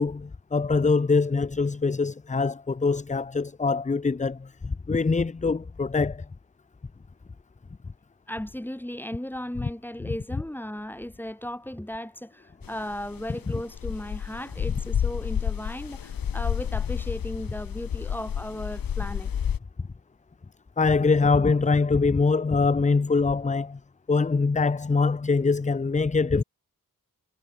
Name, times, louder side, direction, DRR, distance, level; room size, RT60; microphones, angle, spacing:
voice 1, 0.0-6.3 9.6-9.7 10.0-10.1 20.8-23.8 24.1-26.4, left 4 dB, 20° left, 0.6 m, -23 dB
voice 2, 8.3-19.3, left 1 dB, 5° left, 5.0 m, -36 dB
sound 1, 12.6-19.6, left 8 dB, 80° left, 1.3 m, -30 dB
wide cardioid pair, 140°, 34 cm